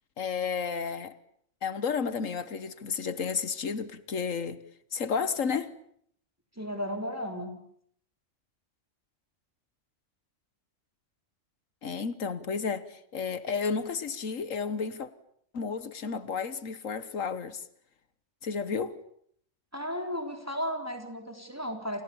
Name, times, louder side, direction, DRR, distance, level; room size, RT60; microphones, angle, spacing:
voice 1, 0.2-1.2 1.6-4.6 4.9-5.7 11.8-15.1 15.5-17.6 18.4-19.0, left 5 dB, 80° left, 1.7 m, -32 dB
voice 2, 6.6-7.5 19.7-22.0, equal, 10° right, 3.9 m, -34 dB
30.0 x 27.0 x 7.1 m
omnidirectional pair, 1.3 m